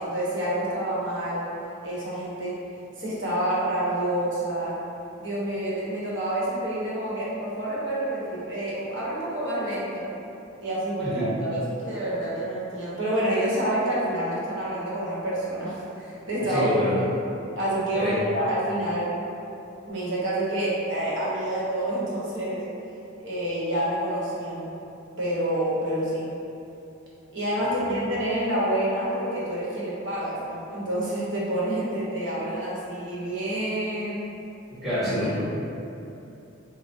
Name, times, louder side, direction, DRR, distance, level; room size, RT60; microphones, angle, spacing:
voice 1, 0.0-1.5 1.8-2.6 3.0-4.8 5.2-10.1 10.6-16.7 17.6-19.1 19.9-22.6 23.2-24.6 25.2-26.3 27.3-34.3, right 1 dB, 60° right, -7 dB, 1.0 m, -28 dB
voice 2, 11.0-11.3 16.4-17.0 17.9-18.1 27.6-27.9 34.7-35.4, left 1 dB, ahead, -13 dB, 1.5 m, -27 dB
5.6 x 2.1 x 2.6 m, 2.9 s
head